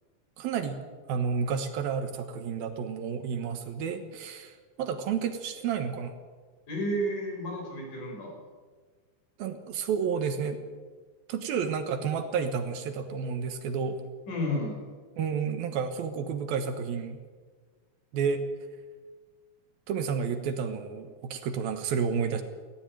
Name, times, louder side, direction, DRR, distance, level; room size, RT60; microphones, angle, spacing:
voice 1, 0.4-0.8 1.1-6.1 9.4-10.6 11.3-14.0 15.2-17.2 18.1-18.4 19.9-22.4, right 6 dB, 70° right, 8 dB, 3.1 m, -31 dB
voice 2, 6.7-8.3 14.3-14.8, equal, 55° left, 0 dB, 7.5 m, -31 dB
18.0 x 16.5 x 9.0 m, 1.4 s
omnidirectional pair, 4.5 m